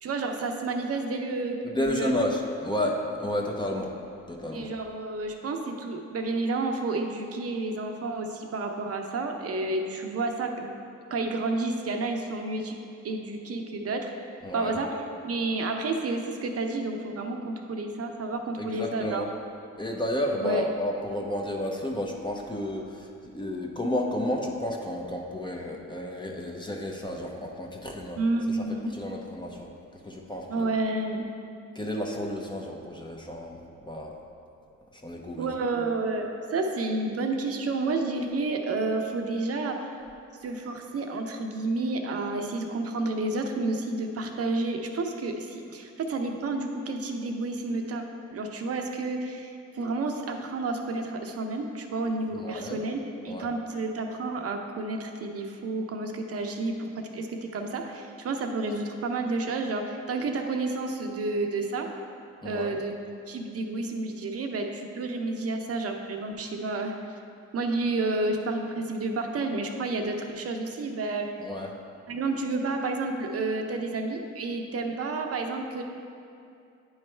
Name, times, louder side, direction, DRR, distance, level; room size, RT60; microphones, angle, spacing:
voice 1, 0.0-2.2 4.5-10.8 11.1-12.8 13.0-14.3 14.5-15.0 15.2-19.2 20.4-20.7 28.2-28.9 30.5-31.3 35.4-39.8 40.4-48.0 48.3-61.9 62.4-63.0 63.3-66.9 67.5-71.3 72.1-75.8, right 3 dB, 55° right, 4 dB, 0.8 m, -30 dB
voice 2, 1.6-3.9 4.3-4.7 14.4-14.8 18.6-19.3 19.7-28.2 28.5-28.6 28.9-29.7 30.0-30.7 31.7-34.1 35.0-35.5 52.3-52.8 53.3-53.5 62.4-62.8 71.4-71.7, left 1 dB, 15° left, 0 dB, 0.8 m, -31 dB
9.5 x 3.2 x 4.4 m, 2.5 s
cardioid pair, 75°, 30 cm